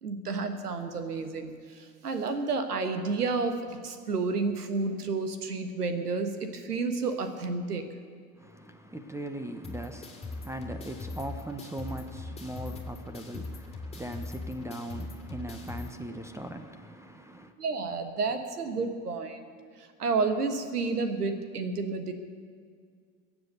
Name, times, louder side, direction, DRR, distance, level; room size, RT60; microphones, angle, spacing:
voice 1, 0.0-7.8 17.6-19.5 19.8-22.1, right 4 dB, 90° right, 1.5 m, -31 dB
voice 2, 8.4-17.5, right 1 dB, 5° right, 1.0 m, -40 dB
sound 1, 9.6-15.9, left 3 dB, 15° left, 2.7 m, -40 dB
22.0 x 7.9 x 6.8 m
hypercardioid pair, 80°, 45 cm